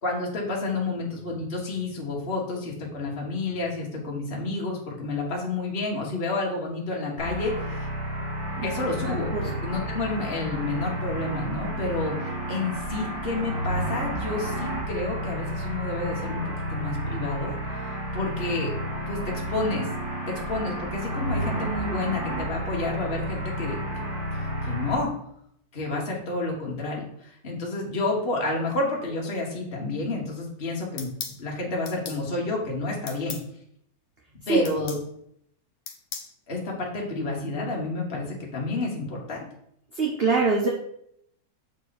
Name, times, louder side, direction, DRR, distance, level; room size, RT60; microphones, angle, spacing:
voice 1, 0.0-7.9 8.6-16.4 16.7-18.7 19.1-19.9 20.3-24.1 24.4-25.1 25.7-31.1 31.4-33.4 34.5-35.0 36.5-39.4, left 2 dB, 35° left, -1 dB, 1.5 m, -30 dB
sound 1, 7.2-25.0, right 1 dB, 55° right, 2.2 m, -31 dB
voice 2, 9.0-9.5 34.5-34.6 40.0-40.7, right 4 dB, 40° right, -2 dB, 1.0 m, -24 dB
sound 2, 31.0-31.4 31.9-32.2 33.1-33.5 34.6-35.0 35.9-36.3, left 6 dB, 60° left, 1.2 m, -37 dB
6.7 x 4.6 x 4.2 m, 0.72 s
omnidirectional pair, 1.9 m